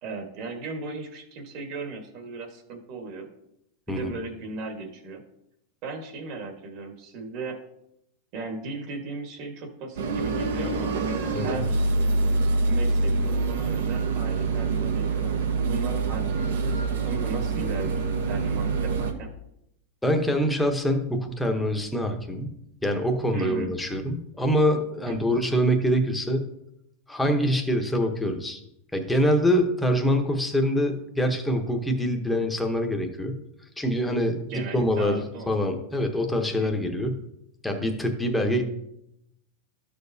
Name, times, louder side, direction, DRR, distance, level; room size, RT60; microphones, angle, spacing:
voice 1, 0.0-3.3 3.9-5.2 5.8-7.6 8.3-11.8 12.7-19.3 23.3-23.7 25.1-25.2 34.5-35.5 36.6-36.9, right 3 dB, 45° right, 4 dB, 1.5 m, -37 dB
sound 1, 10.0-19.1, right 3 dB, 85° right, 1.0 m, -25 dB
voice 2, 20.0-22.5 22.8-26.5 27.1-28.6 28.9-33.4 33.8-37.2 37.6-38.6, equal, 5° left, 3 dB, 0.9 m, -25 dB
12.5 x 6.8 x 2.7 m, 0.82 s
supercardioid pair, 155°, 0 cm